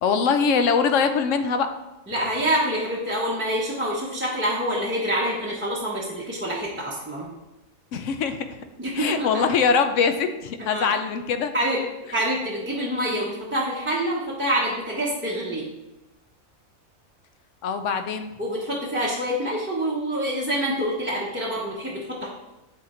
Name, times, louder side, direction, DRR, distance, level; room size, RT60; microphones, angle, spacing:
voice 1, 0.0-1.7 7.9-8.6 8.9-11.5 17.6-18.3, left 5 dB, 70° left, 8 dB, 0.9 m, -23 dB
voice 2, 2.1-7.3 8.8-9.4 10.6-10.9 11.5-11.8 12.1-15.7 18.4-22.3, equal, 10° right, -5 dB, 0.7 m, -26 dB
7.6 x 3.8 x 4.3 m, 0.99 s
omnidirectional pair, 1.4 m